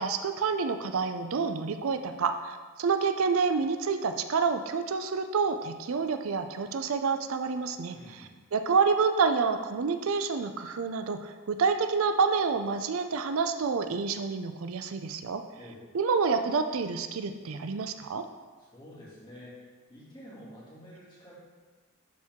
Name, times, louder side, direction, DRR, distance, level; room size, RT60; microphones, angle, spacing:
voice 1, 0.0-15.4 15.9-18.3, right 5 dB, 80° right, 8 dB, 0.5 m, -28 dB
voice 2, 7.9-8.3 15.6-15.8 18.6-19.6 19.9-21.3, equal, 20° left, -8 dB, 2.6 m, -48 dB
11.5 x 4.5 x 3.7 m, 1.4 s
head